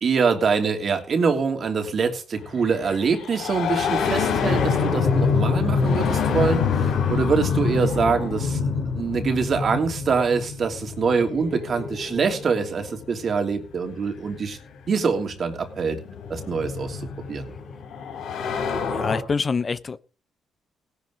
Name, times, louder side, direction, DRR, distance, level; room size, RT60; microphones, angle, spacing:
voice 1, 0.0-14.6 14.9-16.0 16.3-17.5, right 5 dB, 50° right, 3.0 m, -24 dB
sound 1, 2.5-13.1 14.3-14.4 15.5-19.2, left 5 dB, 85° left, 3.6 m, -26 dB
voice 2, 18.9-20.0, left 5 dB, 35° left, 0.7 m, -26 dB
17.5 x 11.0 x 3.9 m
cardioid pair, 90°, 0 cm